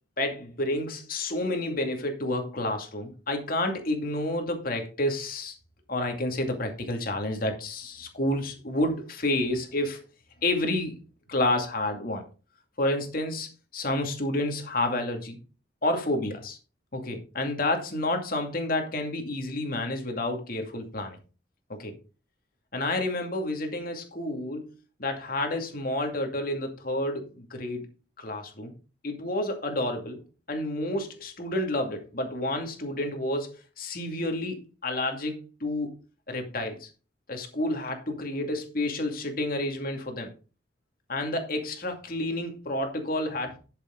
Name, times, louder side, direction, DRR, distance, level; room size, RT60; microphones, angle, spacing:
voice 1, 0.2-5.5 5.9-10.0 10.4-10.9 11.3-12.2 12.8-15.4 15.8-16.6 16.9-21.2 21.7-21.9 22.7-24.7 25.0-27.9 28.2-28.7 29.0-30.2 30.5-33.5 33.8-36.0 36.3-36.9 37.3-40.3 41.1-43.6, left 1 dB, 50° left, 2.4 m, -30 dB
11.5 x 7.4 x 3.9 m
head